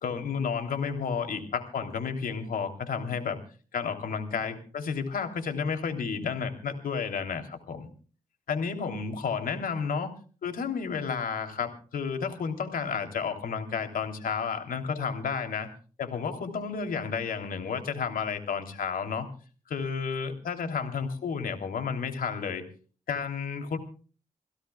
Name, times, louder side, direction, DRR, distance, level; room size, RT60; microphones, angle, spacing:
voice 1, 0.0-3.4 3.7-7.9 8.5-10.1 10.4-15.7 16.0-19.3 19.7-22.6 23.1-23.8, left 6 dB, 85° left, 6 dB, 3.2 m, -31 dB
28.5 x 16.5 x 2.3 m, 0.39 s
cardioid pair, 50°, 14 cm